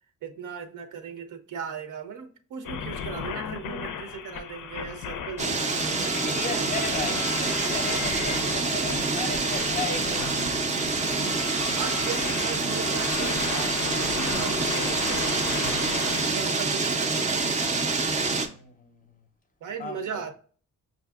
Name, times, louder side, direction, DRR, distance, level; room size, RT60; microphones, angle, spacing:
voice 1, 0.2-6.2 6.5-6.7 11.2-11.4 11.8-17.6 19.6-20.3, right 6 dB, 70° right, 0.6 m, -38 dB
sound 1, 2.6-16.2, left 7 dB, 75° left, 0.5 m, -35 dB
sound 2, 5.4-18.5, right 3 dB, 25° right, 0.4 m, -27 dB
voice 2, 6.0-10.6 18.3-19.2 19.8-20.1, left 3 dB, 25° left, 0.5 m, -36 dB
5.6 x 2.6 x 2.3 m
cardioid pair, 130°, 32 cm